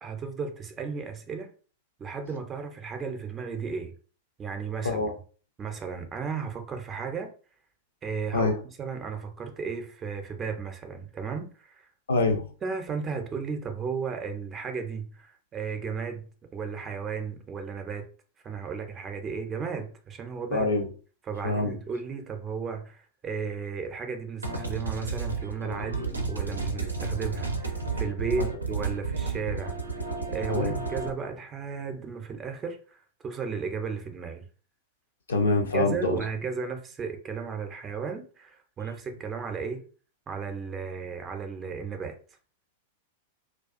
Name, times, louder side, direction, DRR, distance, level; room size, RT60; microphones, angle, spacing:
voice 1, 0.0-1.5 2.0-3.9 4.4-5.0 5.6-7.3 8.0-8.5 8.8-11.9 12.6-16.3 16.5-18.1 18.4-20.7 21.2-29.8 30.3-34.5 35.7-39.8 40.3-42.2, right 5 dB, 25° right, 0.5 m, -34 dB
voice 2, 12.1-12.5 20.5-20.9 21.4-21.8 30.5-30.7 35.3-36.2, left 3 dB, 75° left, 0.5 m, -25 dB
sound 1, 24.4-31.1, right 4 dB, 85° right, 0.4 m, -32 dB
2.3 x 2.2 x 2.5 m
figure-of-eight pair, 95°, 0 cm